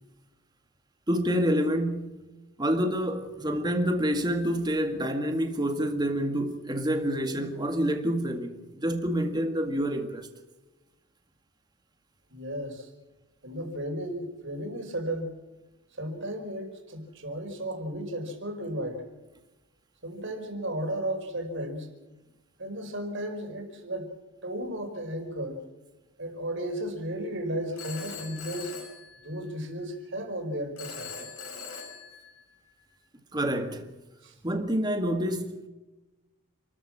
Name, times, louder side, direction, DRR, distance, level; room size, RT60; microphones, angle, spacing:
voice 1, 1.1-2.2 2.6-10.3 33.3-33.9 34.4-35.7, equal, 20° right, 2.0 m, -27 dB
voice 2, 12.3-12.9 13.4-15.3 16.0-19.0 20.0-21.9 22.6-24.1 24.4-25.6 26.2-28.7 29.2-31.3 34.2-34.3, right 1 dB, 55° right, 5.0 m, -34 dB
Telephone, 27.8-29.7 30.8-32.7, left 5 dB, 85° left, 5.9 m, -42 dB
29.0 x 13.5 x 7.5 m
head